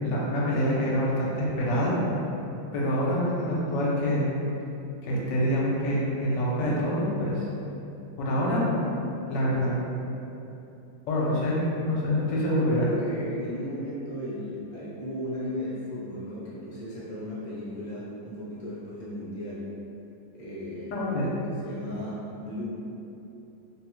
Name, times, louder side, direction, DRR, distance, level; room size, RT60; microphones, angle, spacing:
voice 1, 0.0-1.9 2.7-4.3 5.0-7.5 8.2-8.8 9.3-9.7 11.1-12.9 20.9-21.3, equal, 75° left, -5 dB, 1.3 m, -26 dB
voice 2, 11.2-11.7 12.8-19.7 20.3-20.9 21.6-22.7, equal, 60° left, -9 dB, 0.4 m, -36 dB
3.6 x 2.0 x 2.9 m, 2.9 s
omnidirectional pair, 2.0 m